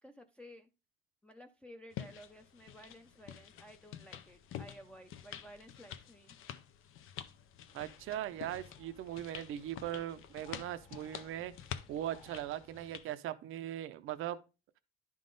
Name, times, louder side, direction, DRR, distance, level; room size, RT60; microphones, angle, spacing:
voice 1, 0.0-0.7 1.2-6.4, equal, 5° left, 0.4 m, -54 dB
sound 1, 1.9-13.1, left 10 dB, 80° left, 0.7 m, -48 dB
sound 2, 7.7-13.0, left 4 dB, 40° left, 1.5 m, -61 dB
voice 2, 7.7-11.5 11.9-14.4, right 12 dB, 75° right, 0.5 m, -39 dB
11.0 x 3.7 x 3.8 m
cardioid pair, 165°, 21 cm